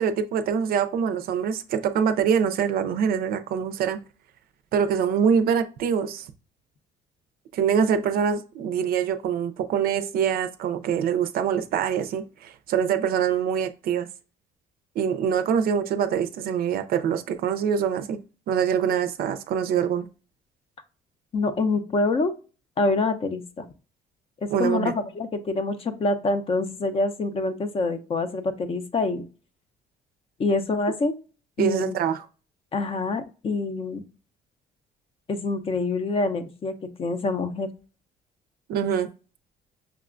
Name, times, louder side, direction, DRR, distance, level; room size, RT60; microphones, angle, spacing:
voice 1, 0.0-4.0 4.7-6.3 7.5-14.1 15.0-18.2 18.5-20.1 24.5-24.9 31.6-32.3 38.7-39.1, right 7 dB, 65° right, 0.4 m, -24 dB
voice 2, 21.3-22.3 22.8-23.6 24.4-29.2 30.4-31.1 31.6-32.0 32.7-34.0 35.3-37.7, left 3 dB, 35° left, 0.5 m, -26 dB
5.8 x 2.1 x 2.4 m
cardioid pair, 110°, 17 cm